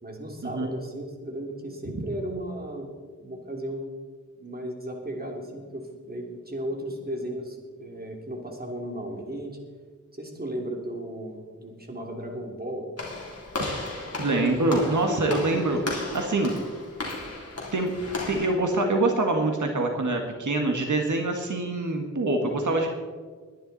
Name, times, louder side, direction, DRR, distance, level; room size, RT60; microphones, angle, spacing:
voice 1, 0.0-2.9 3.2-3.9 4.4-9.6 10.1-12.9, right 1 dB, 30° right, 1 dB, 2.9 m, -35 dB
Walk footsteps / Slam, 13.0-18.5, left 2 dB, 55° left, 3.3 m, -35 dB
voice 2, 14.2-15.8 16.1-16.5 17.7-17.9 18.3-22.9, right 2 dB, 85° right, 3 dB, 1.7 m, -25 dB
21.0 x 10.5 x 4.1 m, 1.5 s
wide cardioid pair, 90°, 29 cm